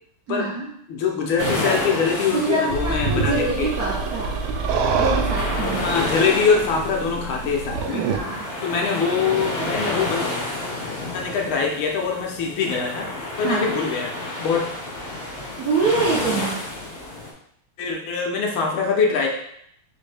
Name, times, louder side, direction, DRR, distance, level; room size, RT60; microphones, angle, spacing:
voice 1, 0.3-0.7 2.3-4.3 4.9-5.8 7.9-8.5 13.4-13.7 15.6-16.6, right 3 dB, 65° right, -4 dB, 0.9 m, -25 dB
voice 2, 0.9-3.7 5.7-8.0 8.6-10.3 11.1-13.1 13.4-14.1 14.4-14.6 17.8-19.3, left 5 dB, 75° left, 0 dB, 1.6 m, -23 dB
sound 1, 1.4-17.3, left 2 dB, 45° left, 0.8 m, -30 dB
sound 2, 2.7-8.2, right 5 dB, 80° right, 1.4 m, -26 dB
4.2 x 3.5 x 3.3 m, 0.69 s
omnidirectional pair, 2.3 m